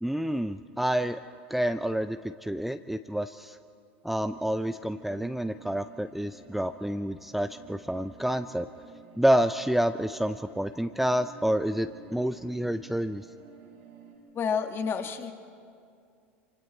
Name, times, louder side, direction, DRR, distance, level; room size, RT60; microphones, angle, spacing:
voice 1, 0.0-1.2 1.5-3.6 4.0-8.7 9.2-13.3, equal, ahead, 10 dB, 0.5 m, -28 dB
sound 1, 4.2-14.1, right 5 dB, 80° right, 5.2 m, -52 dB
voice 2, 14.3-15.3, left 6 dB, 40° left, 7 dB, 1.5 m, -29 dB
25.5 x 25.0 x 4.4 m, 2.4 s
hypercardioid pair, 95°, 6 cm